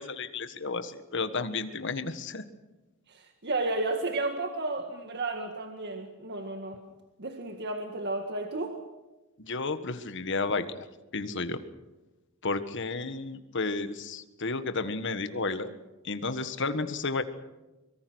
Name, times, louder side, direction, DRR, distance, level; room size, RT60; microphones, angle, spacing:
voice 1, 0.0-2.4 9.4-10.8 11.1-11.6 12.4-15.7 16.0-17.2, left 3 dB, 60° left, 10 dB, 1.6 m, -32 dB
voice 2, 3.1-6.8 7.2-8.8, right 2 dB, 55° right, 5 dB, 1.9 m, -32 dB
24.0 x 23.0 x 6.3 m, 1.1 s
head